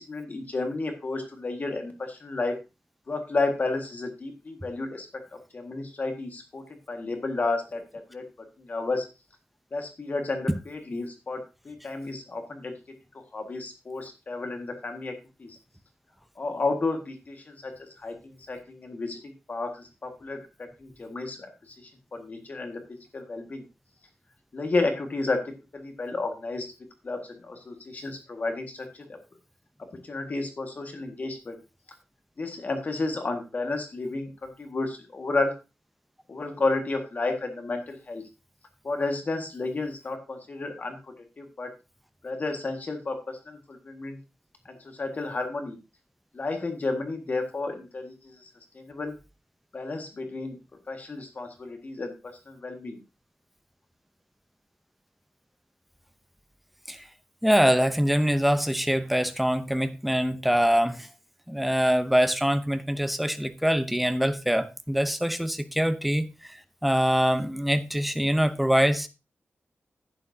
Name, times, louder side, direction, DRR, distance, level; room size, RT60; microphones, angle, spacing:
voice 1, 0.0-2.6 3.1-7.8 8.1-8.2 8.6-9.1 9.7-12.7 13.1-15.1 15.4-15.6 16.4-23.6 24.5-26.7 27.0-29.2 30.0-31.6 32.4-35.5 36.3-38.2 38.8-41.7 42.2-44.2 44.7-45.8 46.3-48.5 48.7-49.1 49.7-50.6 50.9-53.0, left 3 dB, 45° left, 1.8 m, -32 dB
voice 2, 57.4-61.1 61.5-69.1, equal, ahead, 0.7 m, -24 dB
11.0 x 9.0 x 2.8 m
wide cardioid pair, 145°, 4 cm